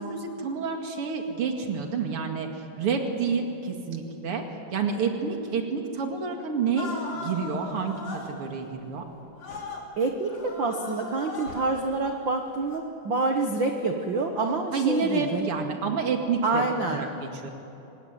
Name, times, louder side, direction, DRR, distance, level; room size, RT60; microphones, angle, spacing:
voice 1, 0.0-4.4 4.7-9.0 14.7-17.5, right 5 dB, 45° right, 3 dB, 2.7 m, -29 dB
sound 1, 6.8-8.3 9.4-9.8 10.2-11.9 12.6-12.8, left 2 dB, 55° left, 4.6 m, -38 dB
voice 2, 10.0-15.5 16.4-17.0, right 3 dB, 70° right, 4 dB, 1.1 m, -27 dB
25.5 x 19.5 x 9.4 m, 3.0 s
omnidirectional pair, 4.1 m